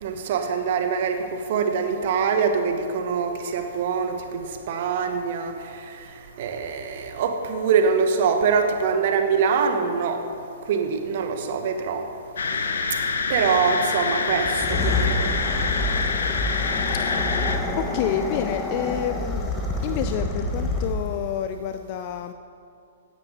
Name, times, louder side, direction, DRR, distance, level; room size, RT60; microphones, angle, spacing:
voice 1, 0.0-5.5 6.4-10.2 10.7-12.0 13.3-15.3, right 6 dB, 45° right, 6 dB, 1.3 m, -24 dB
sound 1, 12.4-17.6, left 4 dB, 65° left, 1.1 m, -26 dB
sound 2, 14.4-21.2, left 2 dB, 15° left, 1.6 m, -27 dB
voice 2, 17.7-19.5 19.8-22.3, left 10 dB, 40° left, 8 dB, 0.5 m, -29 dB
16.5 x 9.9 x 4.1 m, 2.6 s
figure-of-eight pair, 110°, 0 cm